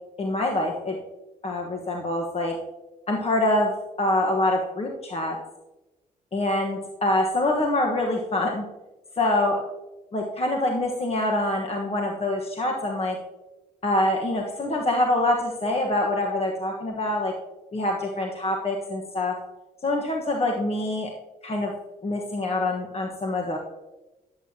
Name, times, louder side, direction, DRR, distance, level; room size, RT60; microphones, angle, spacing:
voice 1, 0.2-1.0 1.4-2.5 3.1-3.7 4.0-5.3 6.3-8.6 9.2-9.6 10.1-13.2 13.8-17.3 17.7-19.3 19.8-21.1 21.4-21.7 22.0-23.6, left 1 dB, 35° left, 0 dB, 1.4 m, -25 dB
11.0 x 7.9 x 2.9 m, 1.1 s
supercardioid pair, 60°, 18 cm